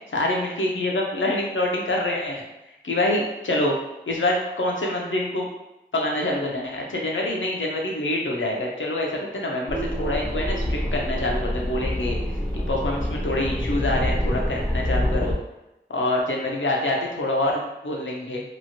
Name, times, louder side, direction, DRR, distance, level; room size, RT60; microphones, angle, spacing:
voice 1, 0.1-2.4 2.8-3.7 4.1-5.5 5.9-12.2 12.7-15.4 15.9-18.4, left 1 dB, 80° left, -1 dB, 0.6 m, -26 dB
sound 1, 9.7-15.3, left 1 dB, 5° left, 0.6 m, -26 dB
3.0 x 2.4 x 2.7 m, 0.93 s
wide cardioid pair, 50°, 20 cm